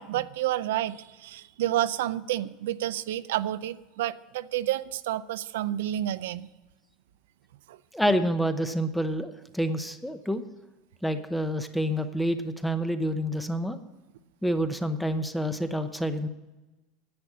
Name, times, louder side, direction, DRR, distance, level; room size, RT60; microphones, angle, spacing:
voice 1, 0.0-6.5 7.7-7.8, right 13 dB, 85° right, 14 dB, 0.4 m, -30 dB
voice 2, 7.9-10.4 11.0-13.8 14.4-16.3, equal, ahead, 9 dB, 0.8 m, -28 dB
10.0 x 8.5 x 7.4 m, 1.1 s
supercardioid pair, 145°, 0 cm